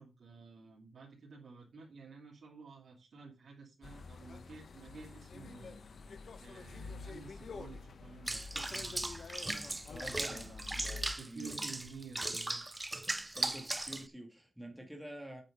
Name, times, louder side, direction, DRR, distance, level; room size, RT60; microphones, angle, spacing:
voice 1, 0.0-5.8 6.4-9.1 10.0-10.7 11.0-12.9, right 4 dB, 85° right, 3.0 m, -52 dB
sound 1, 3.8-11.1, left 4 dB, 75° left, 1.1 m, -48 dB
Water / Bathtub (filling or washing), 8.3-14.1, right 2 dB, 20° right, 0.6 m, -38 dB
voice 2, 9.9-11.7 13.2-15.4, right 1 dB, 5° right, 2.3 m, -48 dB
9.0 x 6.5 x 5.3 m
wide cardioid pair, 100°, 0 cm